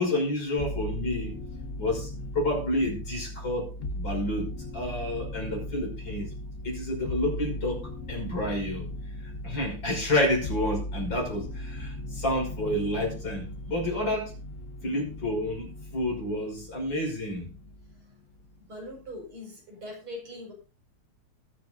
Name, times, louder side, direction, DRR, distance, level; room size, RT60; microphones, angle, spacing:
voice 1, 0.0-1.3 1.8-2.1 2.3-3.7 3.9-6.3 6.6-7.8 8.1-8.9 9.4-14.3 14.8-17.5, left 1 dB, 60° left, 6.5 m, -29 dB
sound 1, 0.6-18.0 18.3-19.1, left 1 dB, 40° left, 1.4 m, -38 dB
voice 2, 18.6-20.5, left 1 dB, 85° right, 5.8 m, -41 dB
20.0 x 8.0 x 2.6 m
omnidirectional pair, 2.3 m